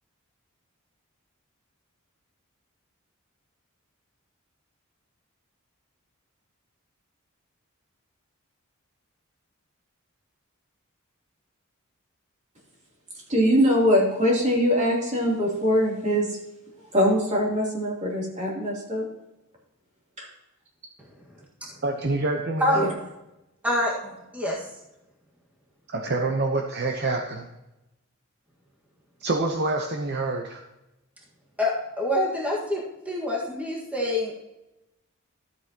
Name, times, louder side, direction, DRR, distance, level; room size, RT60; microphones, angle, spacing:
voice 1, 13.3-16.4 16.8-19.1 20.2-20.3 22.7-22.9, equal, 35° right, -3 dB, 3.1 m, -22 dB
voice 2, 21.8-22.9 25.9-27.5 29.2-30.6, right 2 dB, 50° right, 3 dB, 0.8 m, -26 dB
voice 3, 23.6-24.6 31.6-32.8 33.0-34.3, left 1 dB, 5° right, -3 dB, 1.6 m, -26 dB
13.0 x 7.9 x 2.9 m, 0.94 s
head